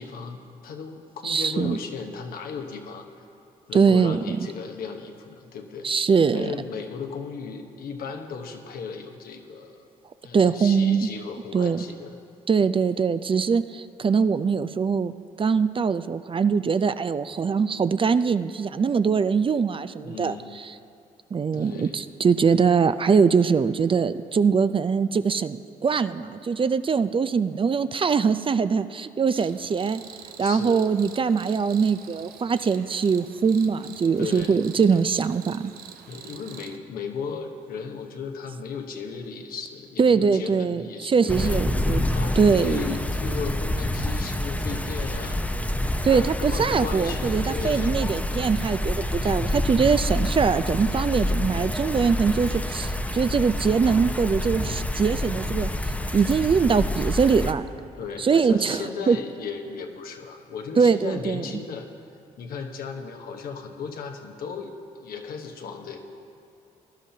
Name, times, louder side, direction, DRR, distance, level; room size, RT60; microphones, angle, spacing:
voice 1, 0.0-3.0 3.7-5.9 6.3-9.9 10.2-12.2 20.0-20.6 21.5-22.0 30.4-30.9 34.2-35.0 36.1-41.5 42.1-45.4 46.0-47.9 54.6-55.1 58.0-61.9 62.4-66.0, left 5 dB, 75° left, 4 dB, 1.0 m, -36 dB
voice 2, 1.2-1.8 3.7-4.4 5.8-6.5 10.3-11.1 11.5-11.8 12.5-20.4 21.3-30.0 30.4-35.7 40.0-42.0 42.4-42.8 46.0-55.7 56.1-57.6 58.2-58.8 59.1-59.2 60.8-61.4, right 5 dB, 35° right, 12 dB, 0.4 m, -22 dB
Cricket, 29.3-36.8, right 9 dB, 85° right, 0.5 m, -45 dB
sound 1, 41.3-57.5, left 1 dB, 10° left, 0.7 m, -27 dB
18.5 x 11.5 x 2.8 m, 2.5 s
supercardioid pair, 60°, 15 cm